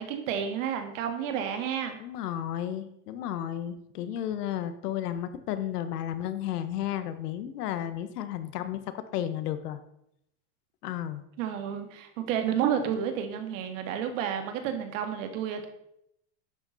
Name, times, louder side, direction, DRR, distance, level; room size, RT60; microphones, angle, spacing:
voice 1, 0.0-2.0 11.4-15.7, right 8 dB, 50° right, 7 dB, 2.0 m, -30 dB
voice 2, 2.0-9.8 10.8-11.2, left 11 dB, 70° left, 11 dB, 1.3 m, -33 dB
11.5 x 9.2 x 4.1 m, 0.76 s
supercardioid pair, 155°, 48 cm